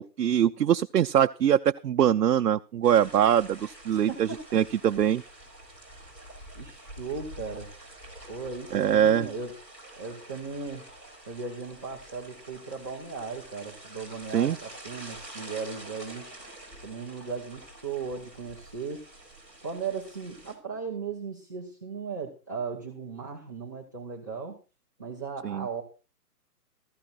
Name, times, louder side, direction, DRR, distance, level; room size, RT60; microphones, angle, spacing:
voice 1, 0.0-5.2 8.7-9.3 14.3-14.6 25.4-25.7, right 9 dB, 70° right, 7 dB, 0.7 m, -23 dB
sound 1, 2.8-20.5, right 1 dB, 10° left, 4.4 m, -47 dB
voice 2, 3.9-4.4 6.5-7.7 8.3-9.5 10.0-10.9 11.3-16.3 16.8-19.0 19.6-24.6 25.0-25.8, right 5 dB, 10° right, -6 dB, 0.7 m, -37 dB
17.0 x 14.5 x 2.5 m, 0.34 s
hypercardioid pair, 165°, 49 cm